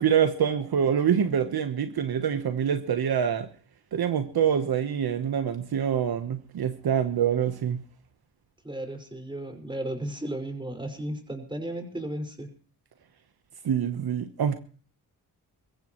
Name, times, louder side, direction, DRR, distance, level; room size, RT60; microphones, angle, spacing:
voice 1, 0.0-3.5 3.9-7.8 13.6-14.5, right 8 dB, 65° right, 8 dB, 1.1 m, -25 dB
voice 2, 8.6-12.5, right 1 dB, 10° right, 4 dB, 5.3 m, -34 dB
23.0 x 15.0 x 3.1 m, 0.44 s
cardioid pair, 65°, 40 cm